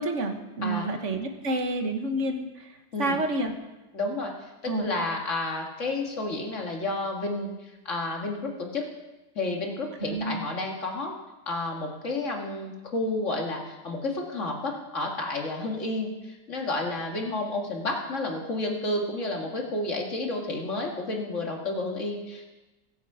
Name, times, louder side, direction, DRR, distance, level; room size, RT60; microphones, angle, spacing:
voice 1, 0.0-3.5 4.7-4.9 10.0-10.4, right 2 dB, 50° right, 6 dB, 1.5 m, -29 dB
voice 2, 3.9-4.3 4.6-8.8 9.4-11.1 11.5-22.5, left 2 dB, 45° left, 1 dB, 2.3 m, -31 dB
21.5 x 8.3 x 4.9 m, 1.1 s
omnidirectional pair, 1.8 m